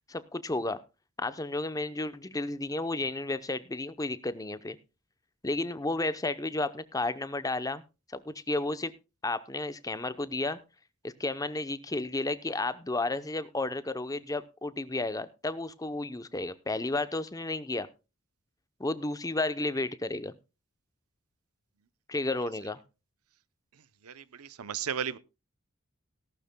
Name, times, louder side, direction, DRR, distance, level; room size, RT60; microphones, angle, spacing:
voice 1, 0.1-0.8 1.2-4.8 5.4-7.8 8.1-8.9 9.2-10.6 11.0-17.9 18.8-20.3 22.1-22.8, left 2 dB, 15° left, 0.7 m, -32 dB
voice 2, 24.0-25.2, right 8 dB, 80° right, 0.7 m, -35 dB
17.5 x 12.0 x 2.2 m
head